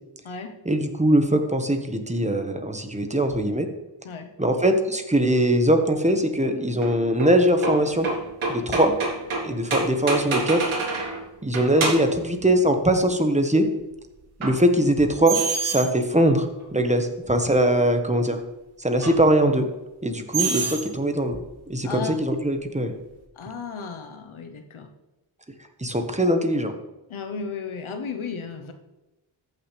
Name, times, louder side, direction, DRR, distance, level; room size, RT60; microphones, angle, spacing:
voice 1, 0.6-3.7 4.4-8.1 8.5-8.9 9.4-10.6 11.4-13.7 14.4-18.4 18.8-19.7 20.0-21.4 21.7-22.9 25.8-26.7, right 1 dB, 15° right, 6 dB, 1.3 m, -21 dB
sound 1, 6.8-11.2 11.5-12.2 14.4-14.6 15.3-15.9 16.6-16.7 19.0-19.2 20.3-20.9, right 4 dB, 90° right, 2.0 m, -27 dB
voice 2, 21.8-22.2 23.4-24.9 27.1-28.7, left 5 dB, 85° left, 6 dB, 1.1 m, -34 dB
14.0 x 5.8 x 3.4 m, 1.0 s
cardioid pair, 55°, 47 cm